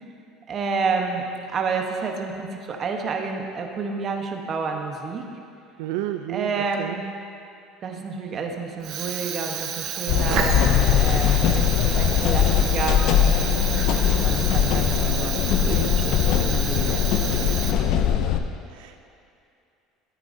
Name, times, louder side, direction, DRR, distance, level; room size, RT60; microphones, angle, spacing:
voice 1, 0.5-5.3 6.3-7.1 7.8-13.1 13.8-17.0 17.4-17.8, right 5 dB, 35° right, 3 dB, 0.9 m, -30 dB
voice 2, 5.8-7.0 18.7-19.0, right 12 dB, 85° right, 7 dB, 0.4 m, -31 dB
Fire, 8.8-18.1, right 8 dB, 50° right, 0.7 m, -31 dB
sound 1, 10.1-18.4, left 9 dB, 60° left, 0.5 m, -21 dB
12.5 x 9.0 x 2.6 m, 2.6 s
cardioid pair, 135°, 0 cm